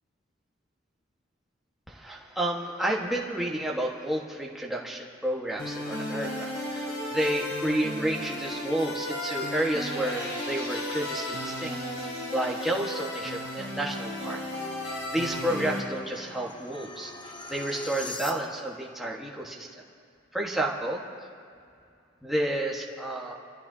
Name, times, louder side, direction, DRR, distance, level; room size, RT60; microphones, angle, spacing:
voice 1, 1.9-11.8 12.0-14.4 14.8-17.1 17.5-19.7 20.3-21.0 22.2-23.3, right 1 dB, ahead, -3 dB, 1.4 m, -31 dB
sound 1, 5.6-15.8, left 1 dB, 55° left, 4.4 m, -34 dB
sound 2, 13.8-18.8, left 2 dB, 25° left, 0.8 m, -44 dB
25.5 x 14.0 x 2.8 m, 2.4 s
head